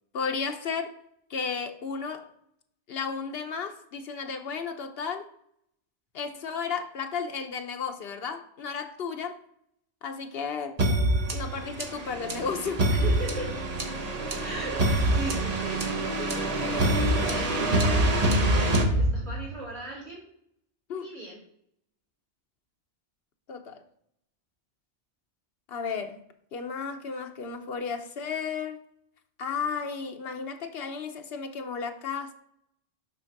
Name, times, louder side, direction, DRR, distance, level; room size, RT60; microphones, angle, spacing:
voice 1, 0.1-0.9 1.3-2.3 2.9-5.3 6.1-9.4 10.0-11.0 11.3-12.8 20.9-21.1 23.5-23.8 25.7-26.2 26.5-28.8 29.4-32.3, left 5 dB, 70° left, 5 dB, 1.0 m, -33 dB
sound 1, 10.8-19.6, right 1 dB, 40° right, 1.0 m, -25 dB
voice 2, 12.9-13.5 14.4-14.8 15.1-20.2 21.0-21.4, right 2 dB, 90° right, -7 dB, 2.8 m, -38 dB
7.4 x 3.5 x 5.9 m, 0.72 s
omnidirectional pair, 1.1 m